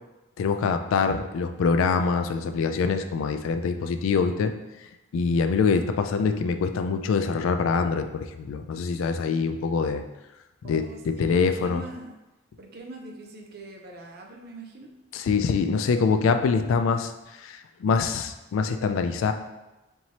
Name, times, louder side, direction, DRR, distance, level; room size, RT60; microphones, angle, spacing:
voice 1, 0.4-4.5 5.1-10.0 10.6-11.8 15.1-17.1 17.4-19.3, left 5 dB, 80° left, 8 dB, 0.3 m, -24 dB
voice 2, 10.6-12.2 12.6-14.9, right 2 dB, 50° right, 1 dB, 0.5 m, -42 dB
4.5 x 2.8 x 2.8 m, 1.0 s
head